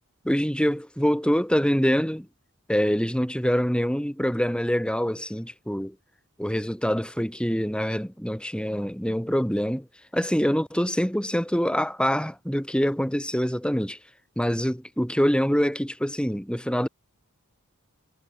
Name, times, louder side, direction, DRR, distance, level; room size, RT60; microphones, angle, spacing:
voice 1, 0.2-2.3 2.7-5.9 6.4-9.9 10.1-14.0 14.3-16.9, equal, 5° left, 6.9 m, -25 dB
head